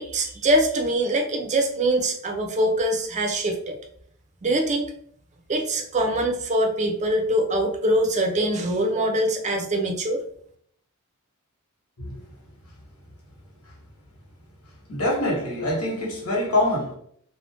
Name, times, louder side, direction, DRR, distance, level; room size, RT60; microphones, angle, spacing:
voice 1, 0.0-3.8 4.4-4.9 5.5-10.2, right 1 dB, 30° right, 0.5 m, -23 dB
voice 2, 14.9-17.0, left 1 dB, 80° left, 1.1 m, -25 dB
2.5 x 2.1 x 3.3 m
head